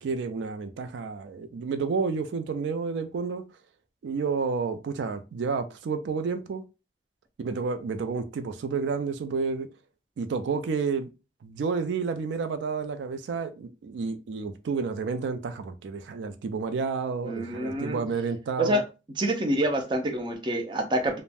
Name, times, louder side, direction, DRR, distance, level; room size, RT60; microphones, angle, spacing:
voice 1, 0.0-3.4 4.0-6.6 7.4-9.7 10.2-11.1 11.4-18.8, right 5 dB, 85° right, 0.4 m, -30 dB
voice 2, 17.2-18.0 18.6-18.8 19.2-21.2, right 1 dB, 25° right, 0.4 m, -27 dB
2.4 x 2.1 x 3.3 m
head